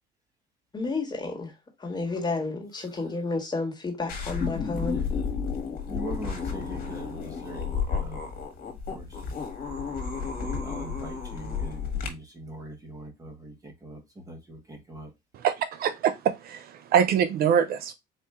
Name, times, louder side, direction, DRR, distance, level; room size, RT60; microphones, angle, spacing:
voice 1, 0.7-1.5 1.8-5.0, left 3 dB, 25° left, 1.5 m, -31 dB
sound 1, 4.1-12.1, left 5 dB, 60° left, 1.4 m, -32 dB
voice 2, 4.8-5.1 5.7-8.3 8.6-9.2 10.2-15.1, right 1 dB, 20° right, 1.4 m, -42 dB
voice 3, 15.4-17.9, right 8 dB, 65° right, 0.5 m, -24 dB
4.3 x 2.6 x 3.6 m
cardioid pair, 110°, 17 cm